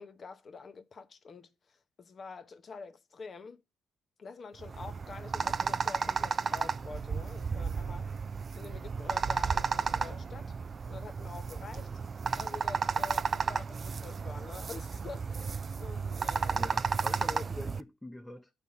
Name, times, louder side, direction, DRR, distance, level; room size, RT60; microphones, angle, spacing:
voice 1, 0.0-3.6 4.2-8.1 8.6-10.5 10.9-11.9 12.4-16.6, left 4 dB, 45° left, 0.8 m, -47 dB
sound 1, 4.6-17.8, right 5 dB, 40° right, 0.4 m, -33 dB
voice 2, 16.5-18.5, left 1 dB, 10° left, 0.7 m, -44 dB
9.8 x 3.4 x 5.6 m
cardioid pair, 90°, 0 cm